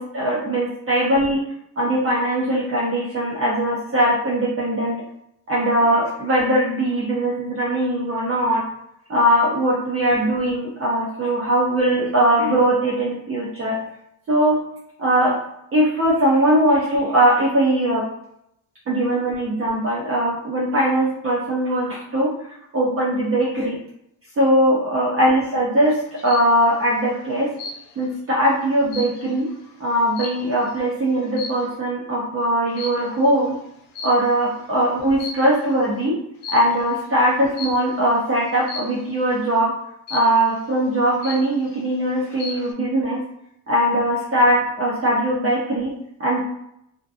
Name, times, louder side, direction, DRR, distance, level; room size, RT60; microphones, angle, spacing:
voice 1, 0.0-1.4 1.8-4.9 5.5-8.6 9.1-13.8 14.3-14.6 15.0-15.4 15.7-18.0 18.9-22.3 22.7-23.8 24.4-27.5 28.0-29.5 29.8-33.5 34.0-36.2 36.5-39.7 40.1-43.2 43.7-45.9 46.2-46.4, right 1 dB, 30° right, -5 dB, 0.4 m, -20 dB
sound 1, 25.9-26.5 27.6-28.1 28.5-30.8 31.3-31.8 32.8-33.2 34.0-34.6 35.0-35.7 36.4-36.8 37.6-38.0 38.7-39.1 40.1-40.6 41.0-41.1 41.2-41.8 42.2-42.7, left 3 dB, 80° left, 0.6 m, -35 dB
2.5 x 2.4 x 2.3 m, 0.78 s
cardioid pair, 125°, 48 cm